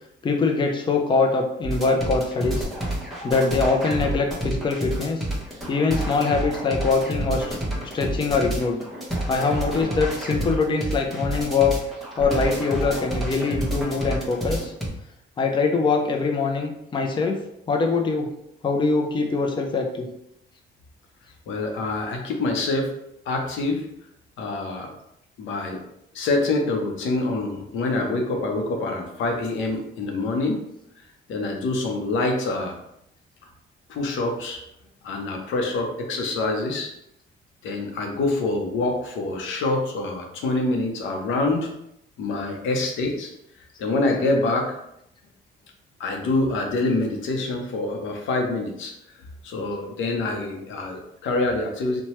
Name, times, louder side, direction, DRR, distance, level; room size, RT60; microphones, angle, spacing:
voice 1, 0.2-2.7 3.2-5.3 5.7-7.6 7.8-8.8 9.3-11.8 12.2-14.7 15.4-17.4 17.7-18.3 18.6-20.1, left 4 dB, 25° left, 3 dB, 0.4 m, -23 dB
sound 1, 1.6-14.9, right 1 dB, ahead, 0.9 m, -29 dB
voice 2, 21.5-22.9 23.3-23.9 24.4-24.9 25.4-25.8 26.1-30.6 31.3-32.8 33.9-34.6 35.0-36.9 37.6-41.7 42.2-43.3 43.8-44.8 46.0-48.9 49.4-52.0, left 2 dB, 75° left, 2 dB, 0.6 m, -26 dB
2.9 x 2.2 x 3.0 m, 0.78 s
cardioid pair, 90°, 20 cm